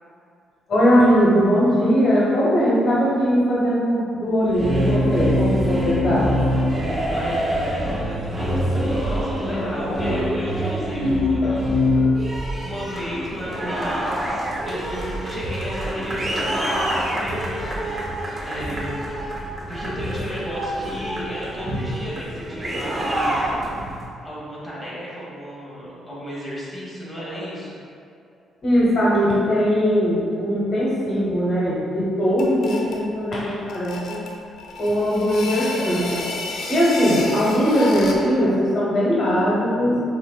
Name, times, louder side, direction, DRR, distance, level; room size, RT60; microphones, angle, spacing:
voice 1, 0.7-6.3 9.5-10.2 11.4-11.6 11.9-12.1 27.3-27.4 28.6-34.2 34.8-36.4 36.7-40.0, equal, 50° left, -7 dB, 0.9 m, -20 dB
sound 1, 4.4-24.0, equal, 40° right, 0.8 m, -25 dB
voice 2, 7.0-12.0 12.3-19.3 19.7-23.5 23.8-23.9 24.2-27.8, equal, 5° left, -8 dB, 1.3 m, -34 dB
sound 2, 32.4-33.0 33.7-38.3, left 3 dB, 70° left, 0.5 m, -31 dB
6.0 x 2.5 x 2.2 m, 2.4 s
cardioid pair, 90°, 0 cm